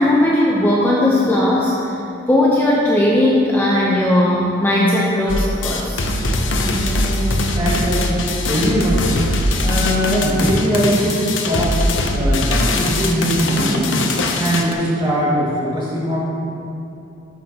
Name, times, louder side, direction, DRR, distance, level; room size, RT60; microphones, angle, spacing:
voice 1, 0.0-1.9 2.3-6.0, left 1 dB, 10° left, -5 dB, 0.6 m, -17 dB
sound 1, 5.3-14.7, left 1 dB, 70° left, 0.7 m, -21 dB
voice 2, 6.6-8.1 8.5-9.3 9.6-11.8 12.1-14.0 14.3-16.2, equal, 25° right, -7 dB, 1.8 m, -21 dB
13.0 x 5.6 x 2.8 m, 2.7 s
head